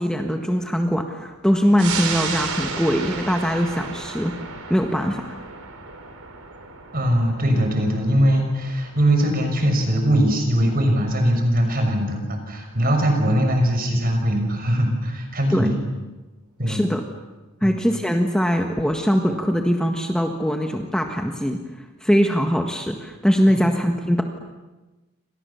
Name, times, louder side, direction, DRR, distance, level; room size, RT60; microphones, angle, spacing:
voice 1, 0.0-4.3 4.7-5.4 15.5-15.8 16.7-17.0 17.6-21.6 22.0-24.2, equal, 5° left, 3 dB, 1.5 m, -21 dB
sound 1, 1.8-12.8 13.1-13.2, right 5 dB, 80° right, 4.1 m, -34 dB
voice 2, 6.9-15.8 16.6-16.8 17.6-17.9 23.5-23.6, equal, 40° right, 4 dB, 6.3 m, -21 dB
29.0 x 26.0 x 7.1 m, 1.1 s
head